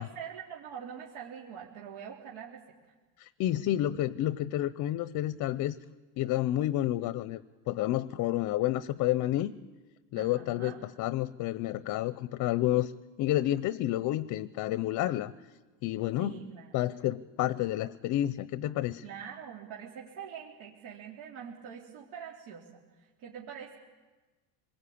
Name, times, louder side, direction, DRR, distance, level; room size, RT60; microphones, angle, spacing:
voice 1, 0.0-2.6 10.1-10.8 16.2-16.7 19.0-23.8, right 8 dB, 70° right, -3 dB, 3.7 m, -44 dB
voice 2, 3.2-5.8 6.2-7.4 7.7-9.5 10.1-12.9 13.2-15.3 15.8-16.3 16.7-19.0, left 14 dB, 40° left, 15 dB, 0.7 m, -30 dB
25.5 x 21.0 x 8.6 m, 1.3 s
supercardioid pair, 140°, 47 cm